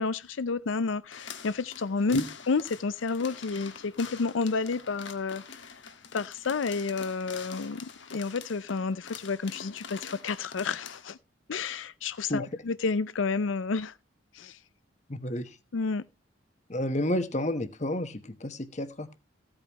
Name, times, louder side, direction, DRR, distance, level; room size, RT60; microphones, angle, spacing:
voice 1, 0.0-2.2 2.5-5.7 6.1-11.2 11.5-13.9 14.3-14.6 15.7-16.0, left 4 dB, 90° left, 0.5 m, -30 dB
sound 1, 1.1-11.1, left 6 dB, 75° left, 1.6 m, -45 dB
voice 2, 15.1-15.5 16.7-19.1, left 1 dB, 35° left, 1.2 m, -31 dB
15.5 x 8.8 x 3.0 m
head